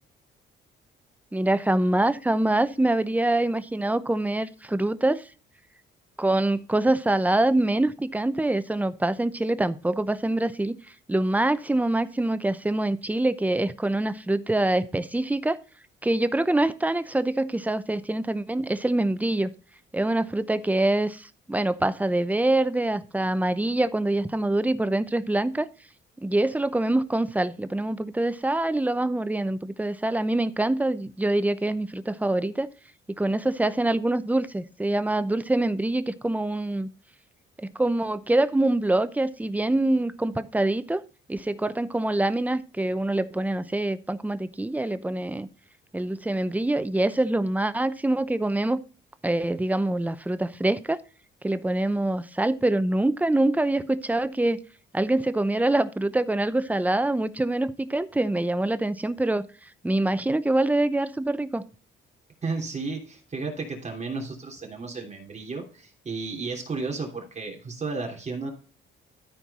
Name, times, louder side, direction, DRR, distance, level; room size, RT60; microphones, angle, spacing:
voice 1, 1.3-5.2 6.2-10.8 11.1-15.6 16.0-19.5 19.9-25.7 26.2-32.7 33.2-36.9 37.6-41.0 41.3-45.5 45.9-48.8 49.2-51.0 51.4-54.6 54.9-59.4 59.8-61.6, right 1 dB, 10° right, 0.7 m, -25 dB
voice 2, 62.4-68.5, right 4 dB, 35° right, 3.1 m, -33 dB
13.0 x 4.6 x 4.1 m
cardioid pair, 90°, 20 cm